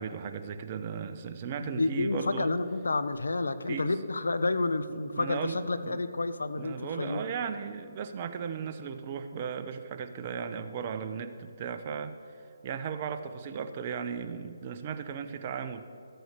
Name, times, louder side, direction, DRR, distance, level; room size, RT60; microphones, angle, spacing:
voice 1, 0.0-2.5 3.7-3.9 4.9-6.0 6.5-16.0, right 6 dB, 35° right, 8 dB, 0.9 m, -36 dB
voice 2, 1.6-7.3, left 3 dB, 85° left, 12 dB, 0.8 m, -30 dB
14.0 x 7.8 x 6.8 m, 2.5 s
hypercardioid pair, 150°, 0 cm